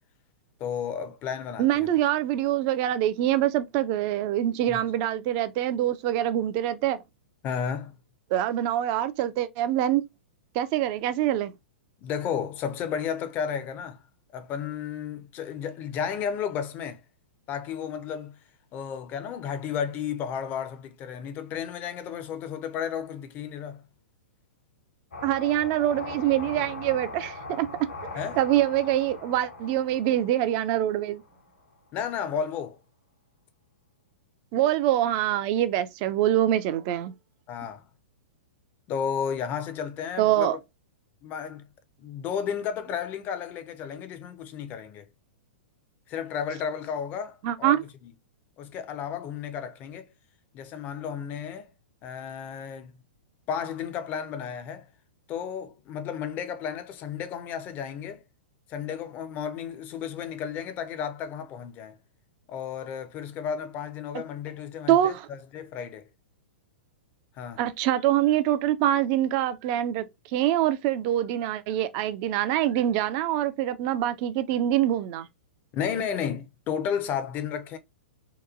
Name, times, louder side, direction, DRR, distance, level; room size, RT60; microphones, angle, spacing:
voice 1, 0.6-1.9 4.7-4.8 7.4-7.9 12.0-14.0 14.3-17.0 17.5-18.4 18.7-23.8 28.1-28.4 31.9-32.8 37.5-37.8 38.9-40.6 41.2-41.7 42.0-45.0 46.1-47.8 48.0-48.1 48.6-50.1 50.5-51.7 52.0-53.0 53.5-54.9 55.3-58.2 58.7-62.0 62.5-66.1 67.4-67.6 75.7-77.8, left 7 dB, 30° left, 0.4 m, -33 dB
voice 2, 1.6-7.0 8.3-10.0 10.5-11.5 25.2-27.9 28.4-31.2 34.5-37.1 40.2-40.6 47.4-47.8 64.9-65.3 67.6-70.0 70.3-75.3, right 12 dB, 40° right, 0.4 m, -25 dB
sound 1, 25.1-31.6, left 3 dB, 80° left, 1.1 m, -41 dB
2.8 x 2.2 x 2.4 m
figure-of-eight pair, 110°, 6 cm